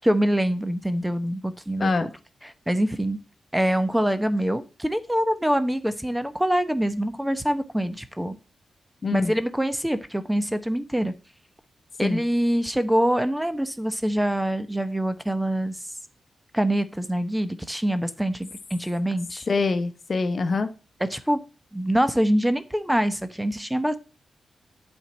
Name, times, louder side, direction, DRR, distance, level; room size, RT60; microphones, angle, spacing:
voice 1, 0.0-1.9 2.4-3.2 3.5-8.4 9.1-11.1 12.0-15.8 16.5-19.5 21.0-21.4 21.7-24.0, equal, 5° right, 11 dB, 0.8 m, -25 dB
voice 2, 9.0-9.3 12.0-12.2 19.5-20.7, left 4 dB, 50° left, 10 dB, 0.9 m, -24 dB
8.0 x 4.4 x 6.1 m, 0.33 s
cardioid pair, 65°, 0 cm